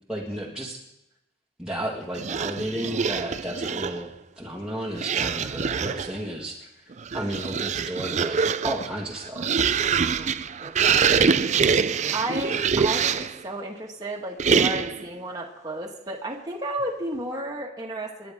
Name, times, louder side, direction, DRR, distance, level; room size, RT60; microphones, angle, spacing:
voice 1, 0.1-0.8 1.6-6.7 7.1-9.6, right 1 dB, 5° right, -5 dB, 1.6 m, -33 dB
sound 1, 2.1-4.1 4.9-6.2 6.9-13.4 14.4-15.1, right 6 dB, 35° right, 0.4 m, -24 dB
voice 2, 9.8-11.4 12.1-18.3, right 1 dB, 20° right, -1 dB, 1.6 m, -33 dB
28.0 x 11.0 x 3.6 m, 0.89 s
head